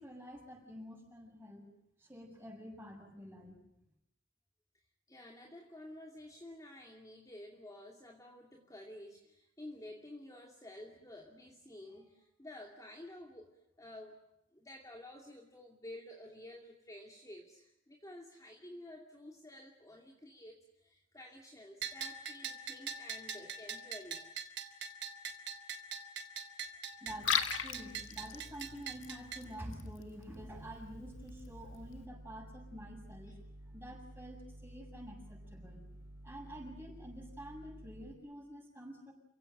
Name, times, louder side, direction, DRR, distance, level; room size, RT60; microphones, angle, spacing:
voice 1, 0.0-1.6 2.0-3.6 27.0-33.4 33.7-35.9 36.2-39.1, equal, 10° right, 1 dB, 7.6 m, -48 dB
voice 2, 5.1-14.2 14.5-24.2, left 1 dB, 20° left, 1 dB, 2.6 m, -51 dB
Bell, 21.8-29.4, right 6 dB, 65° right, 3.1 m, -43 dB
Liquid, 27.1-32.1, left 8 dB, 90° left, 1.9 m, -40 dB
sound 1, 30.3-38.1, right 1 dB, 50° right, 4.6 m, -52 dB
28.5 x 17.0 x 9.1 m, 0.84 s
head